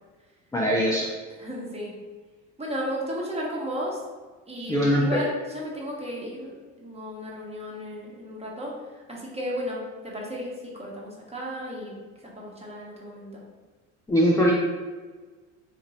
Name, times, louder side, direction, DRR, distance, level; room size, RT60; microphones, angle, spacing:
voice 1, 0.5-1.1 4.7-5.2 14.1-14.5, equal, 10° left, -3 dB, 0.5 m, -21 dB
voice 2, 1.4-2.0 2.6-4.0 4.5-8.8 9.1-12.0 12.4-13.4, equal, 15° right, -4 dB, 1.2 m, -34 dB
2.8 x 2.6 x 4.2 m, 1.4 s
hypercardioid pair, 75°, 37 cm